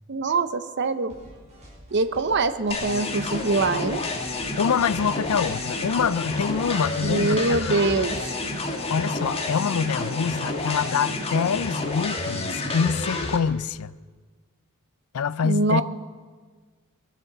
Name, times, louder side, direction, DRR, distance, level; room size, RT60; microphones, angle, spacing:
voice 1, 0.1-1.1 1.9-4.0 7.0-8.3 15.4-15.8, right 3 dB, 55° right, 0.8 m, -24 dB
sound 1, 1.1-9.5, equal, 35° right, 5.4 m, -48 dB
sound 2, 2.7-13.4, left 2 dB, 25° left, 1.6 m, -29 dB
voice 2, 4.6-7.8 8.9-13.9 15.1-15.8, left 6 dB, 80° left, 0.4 m, -25 dB
23.0 x 7.8 x 6.7 m
head